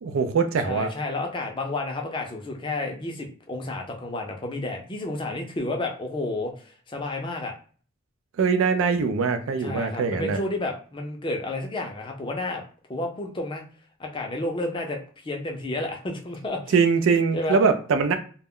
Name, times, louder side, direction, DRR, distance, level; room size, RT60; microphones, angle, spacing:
voice 1, 0.0-0.9 8.4-10.4 16.7-18.2, right 5 dB, 75° right, 0.4 m, -22 dB
voice 2, 0.6-7.6 9.6-12.6 12.9-13.6 14.0-16.7 17.3-17.6, left 2 dB, 25° left, 0.4 m, -31 dB
2.1 x 2.0 x 3.6 m
head